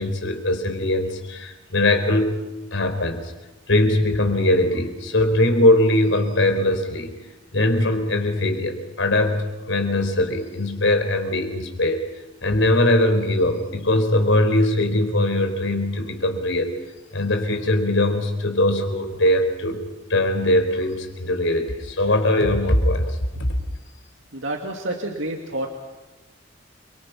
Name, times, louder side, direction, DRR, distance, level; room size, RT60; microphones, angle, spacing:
voice 1, 0.0-2.4 2.7-3.3 3.7-7.2 7.5-12.0 12.4-16.7 17.1-19.8 20.1-23.6, left 1 dB, 80° left, 6 dB, 4.2 m, -21 dB
voice 2, 24.3-25.7, right 1 dB, 80° right, 1 dB, 2.3 m, -28 dB
29.0 x 24.0 x 5.9 m, 1.1 s
head